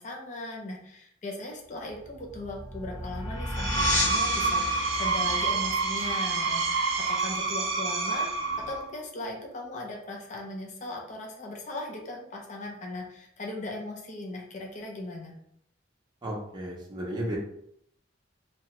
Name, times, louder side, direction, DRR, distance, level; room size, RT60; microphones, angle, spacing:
voice 1, 0.0-8.3 8.7-15.3, left 2 dB, 40° left, 0 dB, 0.6 m, -38 dB
sound 1, 1.9-7.3, left 1 dB, 10° left, 0.7 m, -33 dB
Screech, 3.4-8.9, right 4 dB, 85° right, 0.5 m, -28 dB
voice 2, 16.2-17.4, right 1 dB, 25° right, -3 dB, 0.6 m, -34 dB
2.9 x 2.2 x 2.9 m, 0.71 s
head